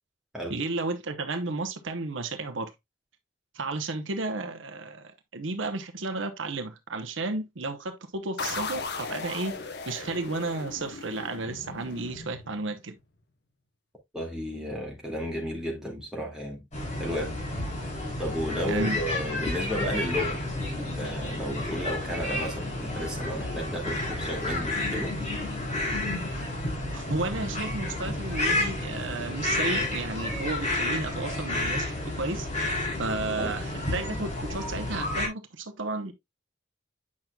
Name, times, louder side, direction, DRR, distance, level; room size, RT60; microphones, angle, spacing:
voice 1, 0.5-2.7 3.5-9.6 9.9-12.9 18.7-19.0 26.9-32.5 33.0-36.1, right 3 dB, 75° right, 1.0 m, -33 dB
sound 1, 8.4-12.9, left 4 dB, 55° left, 1.0 m, -37 dB
voice 2, 14.1-16.7 17.0-17.4 18.2-20.4 20.8-25.1 33.4-33.5, equal, 5° right, 2.3 m, -33 dB
sound 2, 16.7-35.3, left 1 dB, 35° left, 4.7 m, -31 dB
8.5 x 6.0 x 2.3 m
head